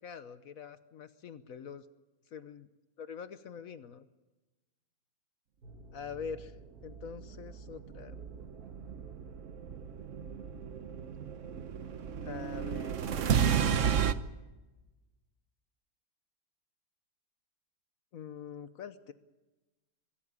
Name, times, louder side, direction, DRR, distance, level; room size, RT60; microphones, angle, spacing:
voice 1, 0.0-1.8 2.3-2.7 3.0-4.0 5.9-6.5 6.8-8.2 12.2-13.1 18.1-19.1, left 6 dB, 70° left, 12 dB, 1.3 m, -44 dB
sound 1, 5.6-11.8, right 5 dB, 85° right, 2.3 m, -52 dB
sound 2, 7.7-14.1, right 8 dB, 60° right, 1.2 m, -32 dB
23.5 x 14.0 x 8.4 m, 1.1 s
omnidirectional pair, 1.6 m